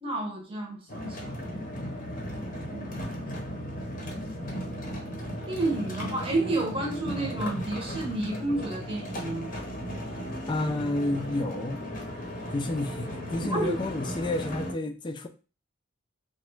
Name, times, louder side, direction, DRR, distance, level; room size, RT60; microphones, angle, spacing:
voice 1, 0.0-1.5 2.7-3.0 5.5-9.5 13.5-13.7, right 2 dB, 30° right, 0.8 m, -31 dB
sound 1, 0.9-14.7, equal, 45° left, 0.7 m, -36 dB
voice 2, 10.5-11.8 12.5-15.3, left 2 dB, 25° left, 0.3 m, -30 dB
3.0 x 2.3 x 3.1 m
head